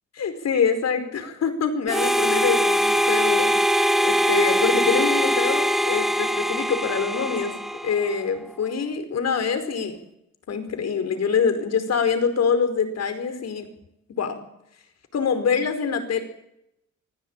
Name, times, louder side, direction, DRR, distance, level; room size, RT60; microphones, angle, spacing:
voice 1, 0.1-7.5 7.8-10.0 10.5-13.7 14.2-14.4 15.1-16.2, left 6 dB, 55° left, 10 dB, 5.1 m, -25 dB
Harmonica, 1.9-8.3, equal, ahead, 1.8 m, -22 dB
24.5 x 16.0 x 9.0 m, 0.80 s
cardioid pair, 90°, 30 cm